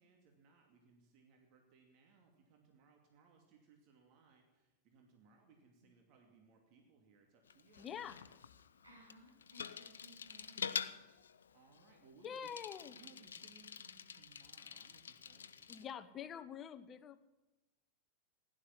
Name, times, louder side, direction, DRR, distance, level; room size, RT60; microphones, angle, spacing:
voice 1, 0.0-7.9 11.5-12.6 13.0-16.2, right 4 dB, 40° right, 2 dB, 2.5 m, -66 dB
Bicycle, 7.5-15.9, left 7 dB, 70° left, 0.7 m, -47 dB
voice 2, 7.8-8.2 12.2-13.0 15.7-17.3, left 8 dB, 25° left, 13 dB, 0.8 m, -46 dB
voice 3, 8.8-10.8, equal, 80° right, -2 dB, 7.5 m, -61 dB
15.5 x 11.0 x 7.4 m, 1.1 s
figure-of-eight pair, 90°, 0 cm